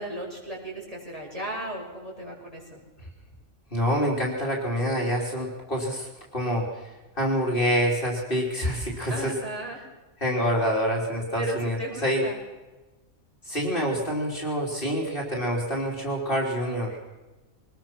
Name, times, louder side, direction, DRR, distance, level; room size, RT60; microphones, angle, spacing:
voice 1, 0.0-2.8 9.1-9.8 11.4-12.4, right 2 dB, 25° right, -3 dB, 6.0 m, -35 dB
voice 2, 3.7-6.6 7.2-9.3 10.2-12.2 13.5-17.0, equal, 40° left, -2 dB, 3.7 m, -26 dB
23.5 x 20.0 x 6.0 m, 1.2 s
omnidirectional pair, 1.5 m